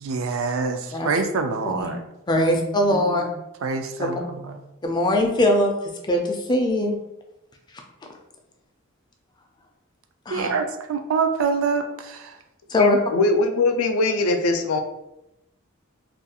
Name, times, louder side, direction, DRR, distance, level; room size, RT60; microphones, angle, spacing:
voice 1, 0.0-2.0 2.4-2.6 2.9-3.3 3.6-4.2 10.3-11.9, right 4 dB, 70° right, 6 dB, 0.4 m, -25 dB
voice 2, 2.3-3.2 4.0-4.2 4.8-5.7 6.1-7.0 10.3-10.5 12.7-13.0, left 1 dB, 20° left, 2 dB, 0.4 m, -21 dB
voice 3, 12.8-14.8, left 3 dB, 90° left, 5 dB, 0.4 m, -21 dB
2.4 x 2.3 x 2.7 m, 0.88 s
head